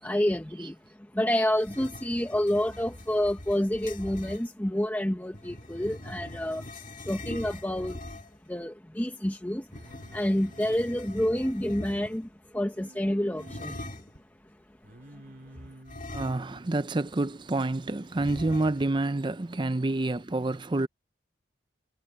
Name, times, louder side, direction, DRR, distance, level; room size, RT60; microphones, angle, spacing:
voice 1, 0.0-6.7 7.0-8.0 8.5-14.0 15.1-15.2, left 1 dB, 10° left, 0.8 m, -29 dB
sound 1, 1.5-4.5 5.3-8.5 9.6-12.3 13.4-14.2 15.8-16.8 17.1-17.2 18.2-19.0, left 1 dB, 45° left, 2.6 m, -43 dB
Singing, 9.7-12.1 12.8-13.9 14.8-16.2 18.1-18.4, right 1 dB, 50° right, 2.3 m, -52 dB
voice 2, 16.1-20.9, right 2 dB, 25° right, 0.5 m, -28 dB
head